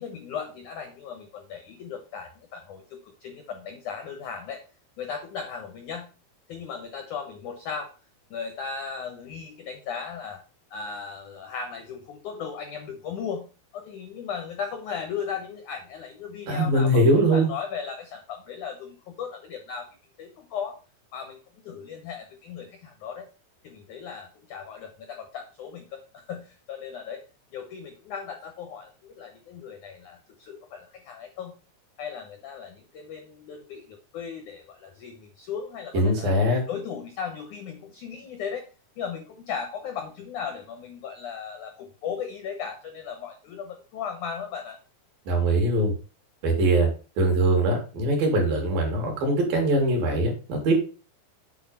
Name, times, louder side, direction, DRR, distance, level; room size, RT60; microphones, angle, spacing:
voice 1, 0.0-4.6 5.0-6.1 6.5-7.9 8.3-10.4 10.7-13.5 13.7-19.9 20.2-20.8 21.1-21.4 21.7-23.3 23.6-27.2 27.5-31.5 32.0-36.3 36.7-38.6 39.0-44.8, left 6 dB, 75° left, 5 dB, 1.8 m, -36 dB
voice 2, 16.5-17.5 35.9-36.6 45.3-45.9 46.4-46.9 47.2-50.7, right 1 dB, 60° right, 1 dB, 3.8 m, -22 dB
8.3 x 4.4 x 5.5 m, 0.34 s
omnidirectional pair, 5.1 m